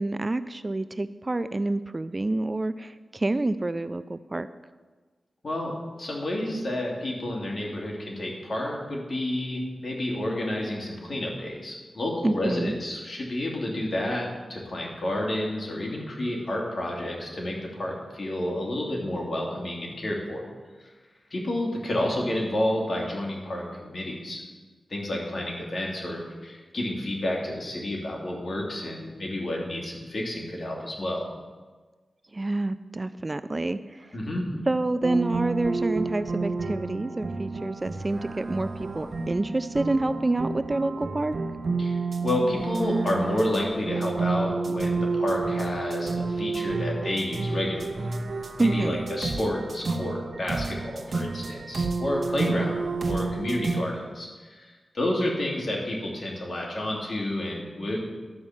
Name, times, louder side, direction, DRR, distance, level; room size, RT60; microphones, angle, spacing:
voice 1, 0.0-4.5 12.2-12.8 32.3-34.2 34.7-41.3 48.6-49.1, right 2 dB, 30° right, 13 dB, 0.4 m, -28 dB
voice 2, 5.4-20.4 21.3-24.4 24.9-31.3 34.1-34.7 41.8-48.1 48.6-58.0, left 1 dB, 50° left, -2 dB, 2.7 m, -30 dB
sound 1, 35.0-53.9, right 3 dB, 60° right, 0.9 m, -30 dB
12.0 x 5.3 x 7.3 m, 1.4 s
wide cardioid pair, 75°, 0 cm